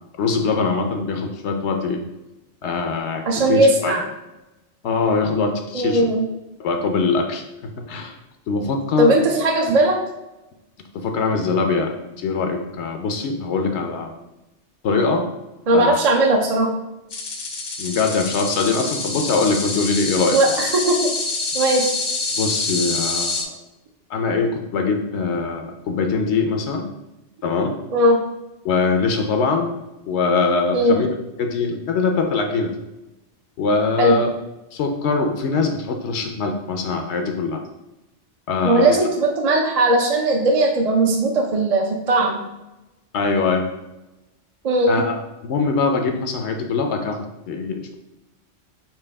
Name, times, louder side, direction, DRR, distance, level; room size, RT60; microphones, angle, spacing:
voice 1, 0.0-2.0 2.6-3.9 4.8-6.0 6.6-8.1 8.5-9.2 10.9-14.1 14.8-15.2 15.7-16.0 17.8-20.4 22.4-23.5 24.1-26.9 27.4-27.7 28.6-29.7 30.1-32.8 33.6-34.3 34.7-37.6 38.5-39.0 43.1-43.7 44.9-45.1 45.4-47.9, left 4 dB, 75° left, 4 dB, 0.9 m, -22 dB
voice 2, 3.3-4.0 5.7-6.3 9.0-10.0 15.7-16.7 20.3-21.0 21.5-21.9 27.9-28.2 30.7-31.0 34.0-34.2 38.6-42.4 44.6-45.0, right 1 dB, 50° right, 0 dB, 0.4 m, -18 dB
sound 1, 17.1-23.4, left 3 dB, 50° left, 0.6 m, -26 dB
4.6 x 3.0 x 3.3 m, 0.98 s
omnidirectional pair, 1.2 m